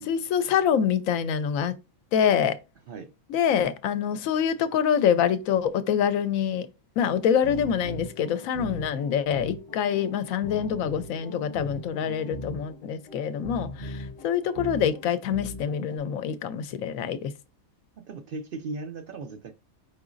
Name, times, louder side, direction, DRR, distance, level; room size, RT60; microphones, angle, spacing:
voice 1, 0.1-1.7 2.1-2.6 3.3-6.7 7.0-17.3, left 8 dB, 75° left, 1.0 m, -25 dB
sound 1, 7.0-16.0, equal, 45° left, 1.1 m, -40 dB
voice 2, 12.0-12.6 18.0-19.5, right 3 dB, 65° right, 0.5 m, -38 dB
4.9 x 3.8 x 2.5 m
omnidirectional pair, 1.5 m